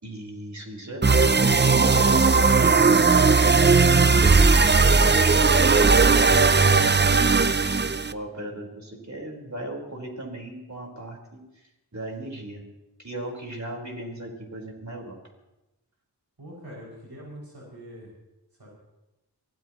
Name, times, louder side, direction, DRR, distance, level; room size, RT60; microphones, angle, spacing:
voice 1, 0.0-4.3 5.0-6.1 6.7-11.4 11.9-12.6 13.0-15.2, right 1 dB, 45° right, 0 dB, 4.6 m, -37 dB
sound 1, 1.0-8.1, right 4 dB, 25° right, 0.6 m, -18 dB
voice 2, 16.4-18.1 18.6-18.7, equal, 80° right, -6 dB, 6.5 m, -43 dB
23.5 x 18.5 x 3.1 m, 0.95 s
wide cardioid pair, 65°, 39 cm